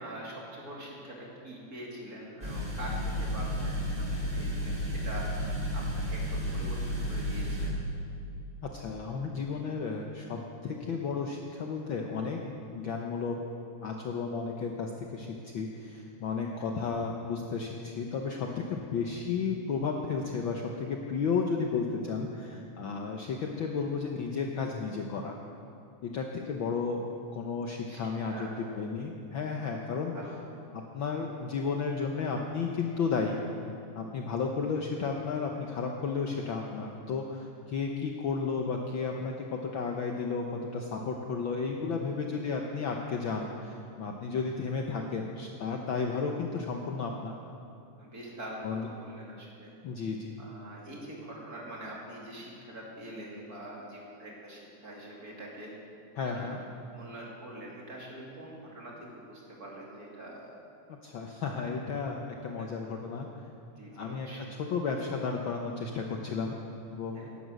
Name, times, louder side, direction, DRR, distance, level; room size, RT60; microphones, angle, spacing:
voice 1, 0.0-7.7 16.4-16.6 27.9-28.5 30.1-30.4 48.0-49.7 50.4-55.7 56.3-56.5 56.8-60.6 62.6-62.7 63.8-64.5 67.1-67.3, right 1 dB, 30° right, -3 dB, 2.8 m, -44 dB
sound 1, 2.4-7.7, equal, 15° right, 4.4 m, -32 dB
voice 2, 8.6-12.4 12.7-13.4 13.8-25.4 26.0-28.5 28.8-30.1 30.7-33.4 34.0-47.3 48.6-48.9 49.8-50.3 56.2-56.6 61.0-63.3 63.9-66.6 66.9-67.3, left 5 dB, 85° left, 2 dB, 1.0 m, -33 dB
16.5 x 11.5 x 6.4 m, 2.5 s
omnidirectional pair, 3.5 m